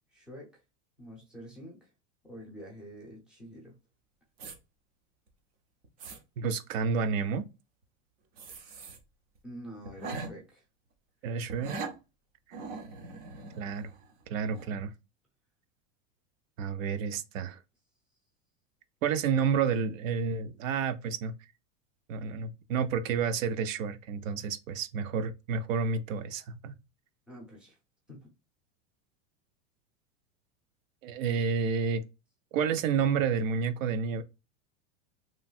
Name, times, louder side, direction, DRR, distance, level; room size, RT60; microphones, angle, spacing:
voice 1, 0.1-0.6 1.0-1.9 2.2-3.8 9.4-10.6 27.3-27.8 28.1-28.3, equal, ahead, 0.6 m, -47 dB
sound 1, 4.4-4.5 5.3-5.4 5.8-6.2 8.4-9.0 9.3-9.4 9.8-10.3 11.5-11.9 12.5-14.2 14.5-14.7, right 4 dB, 50° right, 0.8 m, -41 dB
voice 2, 6.4-7.4 11.2-11.8 13.6-13.9 14.3-14.9 16.6-17.6 19.0-21.3 22.1-26.7 31.0-32.0 32.5-34.2, right 6 dB, 80° right, 0.5 m, -30 dB
3.1 x 2.6 x 2.3 m
supercardioid pair, 165°, 39 cm